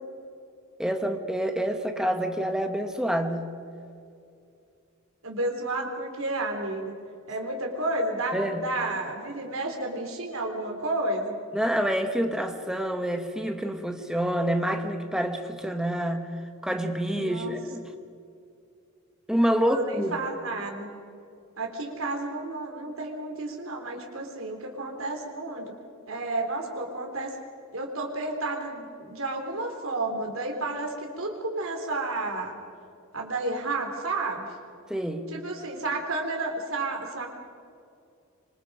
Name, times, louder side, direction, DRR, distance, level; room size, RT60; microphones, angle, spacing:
voice 1, 0.8-3.5 8.3-8.6 11.5-16.3 16.6-17.8 19.3-20.2 34.9-35.3, equal, 5° right, 5 dB, 1.5 m, -27 dB
voice 2, 5.2-6.9 7.3-11.3 17.1-17.5 19.6-20.9 21.6-25.7 26.1-27.4 27.7-32.5 33.1-34.5 35.3-37.3, right 2 dB, 75° right, 2 dB, 3.9 m, -31 dB
26.0 x 25.0 x 5.0 m, 2.5 s
head